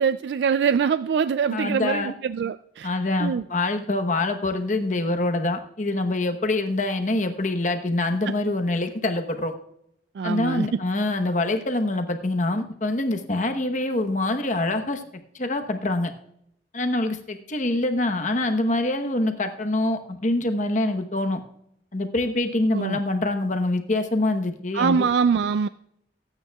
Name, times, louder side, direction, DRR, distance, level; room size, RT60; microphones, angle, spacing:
voice 1, 0.0-2.9 3.2-3.4 10.2-10.7 22.7-23.0 24.7-25.7, right 6 dB, 70° right, 13 dB, 0.3 m, -23 dB
voice 2, 1.5-2.1 2.8-9.5 10.2-15.0 15.3-16.1 16.7-21.4 21.9-25.1, left 2 dB, 45° left, 6 dB, 1.0 m, -25 dB
23.5 x 9.1 x 2.3 m, 0.76 s
head